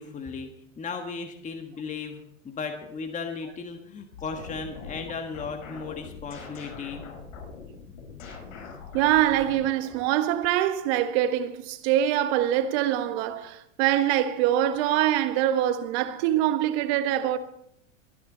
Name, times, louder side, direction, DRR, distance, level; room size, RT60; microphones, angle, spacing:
voice 1, 0.0-7.0, left 5 dB, 20° left, 1.6 m, -36 dB
sound 1, 4.1-10.3, left 5 dB, 75° left, 7.3 m, -43 dB
voice 2, 8.9-17.4, right 12 dB, 55° right, 1.4 m, -24 dB
23.0 x 10.5 x 3.9 m
hypercardioid pair, 115°, 39 cm